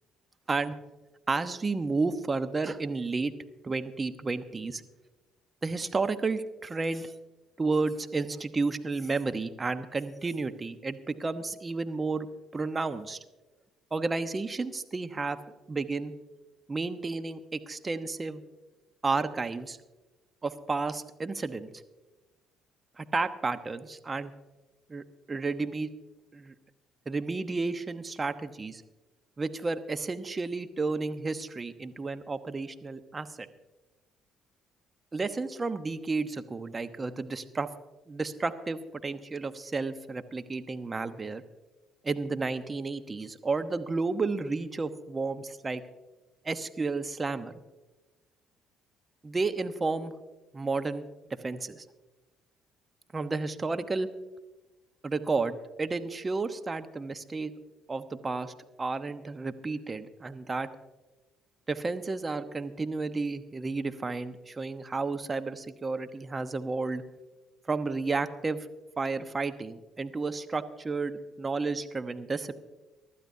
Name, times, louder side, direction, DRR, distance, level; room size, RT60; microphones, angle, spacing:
voice 1, 1.3-3.3 3.6-4.8 5.6-7.1 7.6-12.3 12.5-13.2 13.9-15.4 15.7-16.1 16.7-18.4 19.0-19.8 20.4-21.7 23.0-24.3 24.9-25.9 26.3-26.5 27.1-28.8 29.4-33.5 35.1-37.7 38.1-41.4 42.0-45.8 46.4-47.6 49.2-50.1 50.5-51.1 51.4-51.8 53.1-54.1 55.0-57.5 57.9-60.7 61.7-67.0 67.7-68.7 69.0-72.5, right 3 dB, 30° right, 10 dB, 1.0 m, -32 dB
24.0 x 12.0 x 2.8 m, 1.1 s
hypercardioid pair, 55°, 0 cm